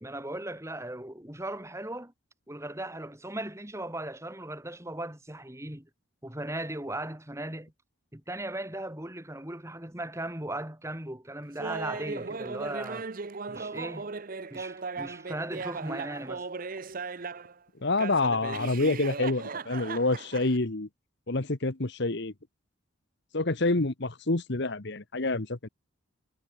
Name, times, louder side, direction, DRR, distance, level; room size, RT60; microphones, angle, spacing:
voice 1, 0.0-2.1 2.5-5.9 6.2-7.7 8.1-13.1 13.5-14.1 14.5-16.5, right 1 dB, 15° right, 2.4 m, -37 dB
Laughter, 11.6-17.5 18.0-20.6, right 4 dB, 40° right, 0.7 m, -37 dB
voice 2, 17.8-20.9 21.3-22.3 23.3-25.7, left 2 dB, 55° left, 1.3 m, -27 dB
head